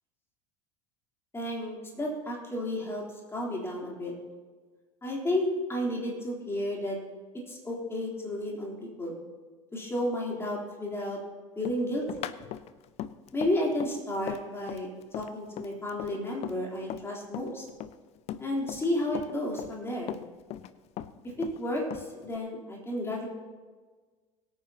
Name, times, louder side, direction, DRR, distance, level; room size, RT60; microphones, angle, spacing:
voice 1, 1.3-3.0 3.3-4.1 5.0-7.0 7.3-9.2 9.7-11.2 11.6-12.3 13.3-14.9 15.1-17.7 18.4-20.1 21.4-23.3, left 1 dB, 15° left, -3 dB, 3.5 m, -32 dB
Run, 11.6-17.1 17.3-18.9 19.1-20.7 21.0-22.4, left 12 dB, 40° left, 0.6 m, -39 dB
21.5 x 9.1 x 2.9 m, 1.4 s
figure-of-eight pair, 75°, 18 cm